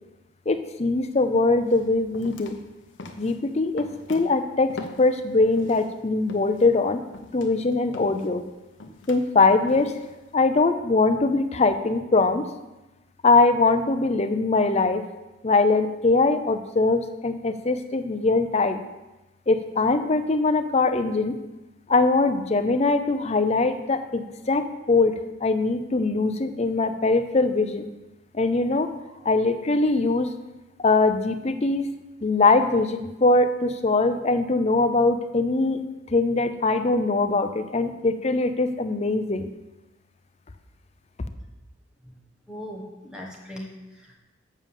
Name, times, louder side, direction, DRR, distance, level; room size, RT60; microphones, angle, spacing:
voice 1, 0.5-2.6 3.2-7.0 7.3-8.4 9.1-9.9 10.3-12.5 13.2-15.1 15.4-18.8 19.5-21.4 21.9-27.9 28.3-28.9 29.2-30.3 30.8-31.9 32.2-35.8 36.1-39.5, left 3 dB, 35° left, 8 dB, 0.5 m, -22 dB
sound 1, 1.1-1.2 1.7-5.9 6.3-10.3, left 2 dB, 65° left, 0.9 m, -42 dB
voice 2, 42.5-44.2, equal, 5° right, -2 dB, 1.5 m, -39 dB
7.4 x 5.2 x 7.2 m, 1.0 s
head